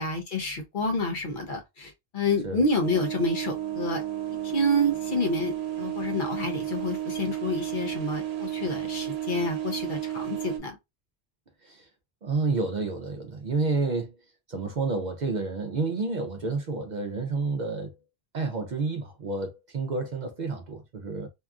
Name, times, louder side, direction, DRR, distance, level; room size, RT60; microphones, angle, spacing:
voice 1, 0.0-4.0 4.4-5.5 5.8-10.8, left 1 dB, 55° left, 0.8 m, -28 dB
sound 1, 2.8-10.6, right 12 dB, 80° right, 0.9 m, -32 dB
voice 2, 12.2-14.1 14.5-17.9 18.3-21.3, right 3 dB, 55° right, 0.6 m, -29 dB
2.8 x 2.3 x 2.3 m
omnidirectional pair, 1.1 m